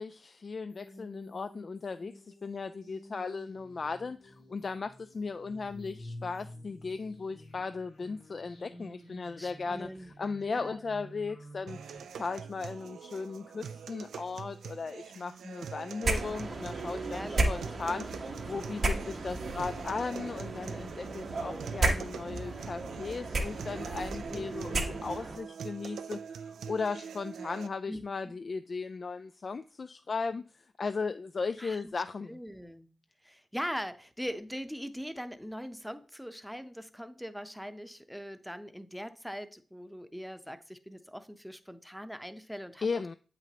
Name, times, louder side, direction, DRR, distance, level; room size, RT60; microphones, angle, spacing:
voice 1, 0.0-11.8 12.2-32.4 42.8-43.1, left 4 dB, 55° left, 0.3 m, -37 dB
sound 1, 0.7-12.0, equal, 90° left, 2.7 m, -50 dB
voice 2, 9.4-10.1 10.5-10.8 17.1-17.6 22.2-22.7 24.3-24.7 27.9-28.3 31.6-31.9 32.3-32.9 33.2-42.9, equal, ahead, 0.7 m, -41 dB
sound 2, 11.7-27.7, right 6 dB, 85° right, 0.4 m, -44 dB
sound 3, 16.0-25.4, right 2 dB, 65° right, 1.1 m, -34 dB
7.7 x 6.0 x 2.9 m
cardioid pair, 50°, 0 cm